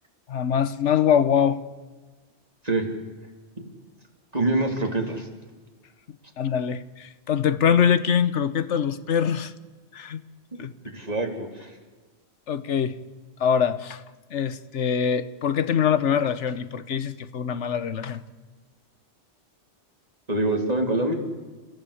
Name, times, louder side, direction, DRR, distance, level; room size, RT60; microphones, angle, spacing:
voice 1, 0.3-1.6 6.4-9.5 9.9-10.2 10.6-10.7 12.5-13.0 13.4-14.0 14.3-18.2, left 8 dB, 80° left, 14 dB, 1.2 m, -23 dB
voice 2, 4.3-5.3 10.5-11.7 20.3-21.1, right 2 dB, 35° right, 2 dB, 3.3 m, -25 dB
29.0 x 16.0 x 8.5 m, 1.3 s
omnidirectional pair, 1.2 m